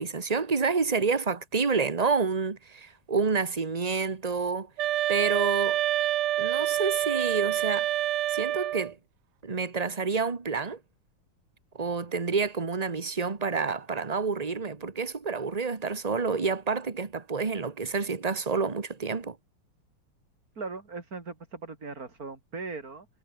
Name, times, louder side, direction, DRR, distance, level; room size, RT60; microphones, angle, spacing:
voice 1, 0.0-4.7 5.1-5.8 6.4-7.9 8.3-8.9 9.4-10.8 11.8-19.4, right 4 dB, 20° right, 1.3 m, -28 dB
sound 1, 4.8-8.9, right 12 dB, 65° right, 1.1 m, -27 dB
voice 2, 20.6-23.1, right 4 dB, 40° right, 4.0 m, -39 dB
omnidirectional pair, 2.4 m